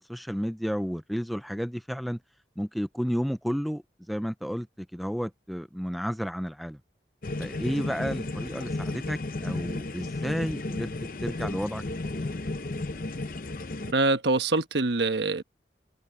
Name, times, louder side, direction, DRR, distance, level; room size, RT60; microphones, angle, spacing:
voice 1, 0.0-2.2 2.6-6.8 7.4-10.9 11.2-12.3, equal, ahead, 0.5 m, -32 dB
sound 1, 7.2-13.9, left 2 dB, 50° left, 0.8 m, -33 dB
voice 2, 13.9-15.4, right 3 dB, 70° right, 1.2 m, -24 dB
open air
head